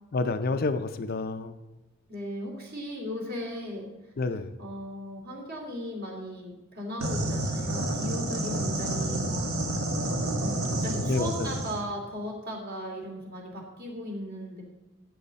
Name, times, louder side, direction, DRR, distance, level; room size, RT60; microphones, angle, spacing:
voice 1, 0.1-1.5 4.2-4.6 11.1-11.5, left 3 dB, 45° left, 9 dB, 0.5 m, -29 dB
voice 2, 2.1-4.1 4.6-9.5 10.4-14.6, equal, 45° right, -1 dB, 2.9 m, -37 dB
sound 1, 7.0-11.8, right 1 dB, 75° right, 1.7 m, -29 dB
14.0 x 7.9 x 4.1 m, 1.1 s
head